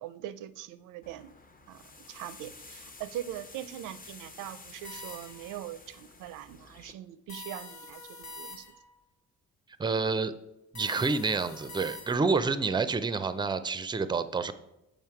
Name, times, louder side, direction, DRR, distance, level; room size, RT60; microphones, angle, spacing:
voice 1, 0.0-1.3 1.7-1.8 2.1-8.7, right 12 dB, 90° right, 14 dB, 0.5 m, -41 dB
sound 1, 1.0-6.9, left 3 dB, 30° left, 0.8 m, -51 dB
sound 2, 4.8-5.6 7.3-9.0 10.7-12.4, left 2 dB, 90° left, 1.8 m, -45 dB
voice 2, 9.8-10.3 10.7-14.5, right 4 dB, 15° right, 12 dB, 0.4 m, -28 dB
7.3 x 5.1 x 4.7 m, 0.90 s
cardioid pair, 90°, 30 cm